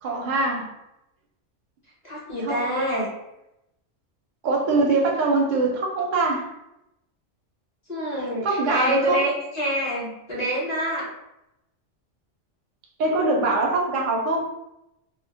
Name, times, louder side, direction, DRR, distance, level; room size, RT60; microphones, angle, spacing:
voice 1, 0.0-0.7 2.4-2.6 4.4-6.5 8.4-9.2 13.0-14.4, right 3 dB, 55° right, 0 dB, 0.5 m, -22 dB
voice 2, 2.0-3.1 7.9-11.1, equal, 40° left, -6 dB, 0.8 m, -26 dB
2.2 x 2.0 x 3.3 m, 0.87 s
omnidirectional pair, 1.3 m